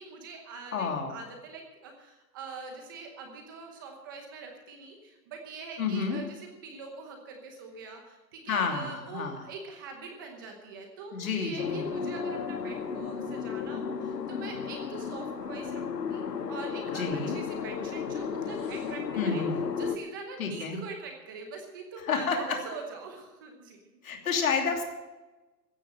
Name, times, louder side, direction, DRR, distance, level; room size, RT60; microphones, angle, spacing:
voice 1, 0.0-16.2 16.5-23.8, right 4 dB, 15° right, 3 dB, 0.9 m, -43 dB
voice 2, 0.7-1.1 5.8-6.2 8.5-9.4 11.1-11.9 16.9-17.4 19.2-19.5 20.4-20.8 22.0-22.5 24.0-24.8, left 5 dB, 55° left, 2 dB, 3.0 m, -30 dB
sound 1, 11.6-20.0, left 6 dB, 75° left, 1.5 m, -34 dB
15.5 x 9.5 x 7.4 m, 1.1 s
hypercardioid pair, 165°, 50 cm